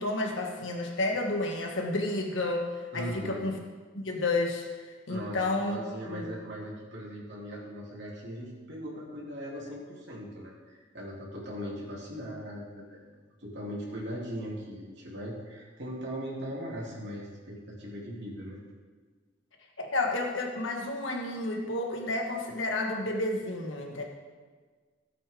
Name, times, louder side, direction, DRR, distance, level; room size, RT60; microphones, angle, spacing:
voice 1, 0.0-3.6 3.9-5.8 6.0-6.3 19.8-24.1, left 2 dB, 90° left, 2 dB, 1.7 m, -31 dB
voice 2, 2.9-3.4 5.1-13.1 13.4-18.6, equal, 65° right, -5 dB, 3.3 m, -39 dB
16.5 x 8.5 x 3.8 m, 1.5 s
head